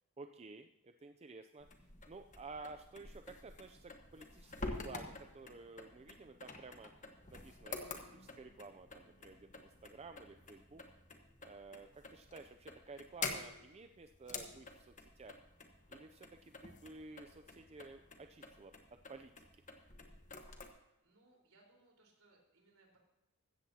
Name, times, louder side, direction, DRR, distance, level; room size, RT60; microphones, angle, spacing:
voice 1, 0.2-1.7 2.1-6.9 7.3-10.8 11.4-15.4 15.9-19.3, right 3 dB, 30° right, 7 dB, 0.4 m, -53 dB
sound 1, 1.6-20.7, left 3 dB, 35° left, 1.3 m, -49 dB
voice 2, 21.0-23.0, right 2 dB, 65° right, 0 dB, 4.2 m, -68 dB
16.0 x 13.5 x 2.8 m, 0.96 s
head